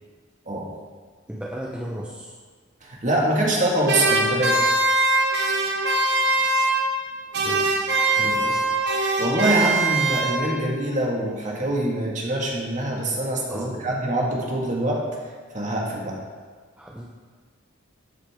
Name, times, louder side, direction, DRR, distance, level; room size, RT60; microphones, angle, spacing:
voice 1, 1.3-2.3 7.3-7.9 8.2-8.5 13.5-14.0 16.8-17.1, equal, 5° right, -3 dB, 0.7 m, -35 dB
voice 2, 2.8-4.6 8.2-8.5 8.8-15.0 15.5-16.2, right 1 dB, 40° right, -2 dB, 1.9 m, -24 dB
sound 1, 3.9-7.1 7.3-10.7, right 2 dB, 55° right, 1.2 m, -22 dB
12.0 x 8.3 x 3.6 m, 1.5 s
head